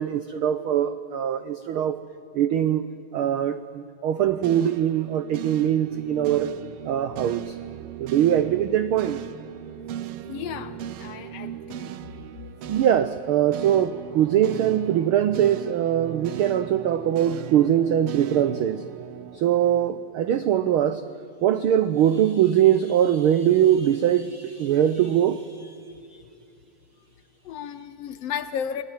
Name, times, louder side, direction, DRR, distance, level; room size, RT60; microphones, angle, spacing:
voice 1, 0.0-2.0 2.3-2.8 3.1-6.5 6.8-7.6 8.0-9.2 12.7-18.8 19.3-21.0 21.4-25.7, right 10 dB, 85° right, 1.1 m, -22 dB
sound 1, 4.4-20.7, right 11 dB, 65° right, 1.5 m, -38 dB
voice 2, 10.3-11.9 27.4-28.8, left 8 dB, 70° left, 1.7 m, -33 dB
28.0 x 19.0 x 8.9 m
omnidirectional pair, 3.3 m